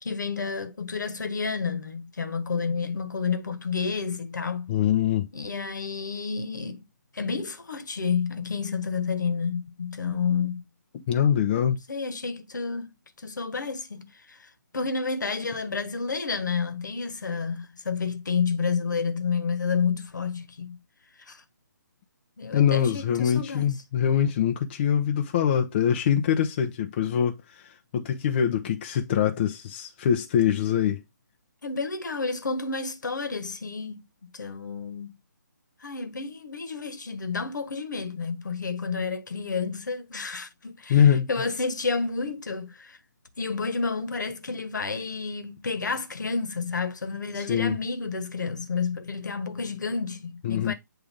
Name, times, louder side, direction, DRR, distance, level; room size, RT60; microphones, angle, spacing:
voice 1, 0.0-4.7 5.3-6.8 7.1-10.6 11.9-20.8 21.3-21.4 22.4-23.7 31.6-35.1 35.8-43.0 43.4-50.7, left 5 dB, 70° left, 1.4 m, -30 dB
voice 2, 4.7-5.3 11.1-11.8 22.5-31.0 40.9-41.3 47.3-47.8 50.4-50.7, left 9 dB, 35° left, 0.8 m, -23 dB
8.5 x 3.4 x 3.6 m
figure-of-eight pair, 150°, 10 cm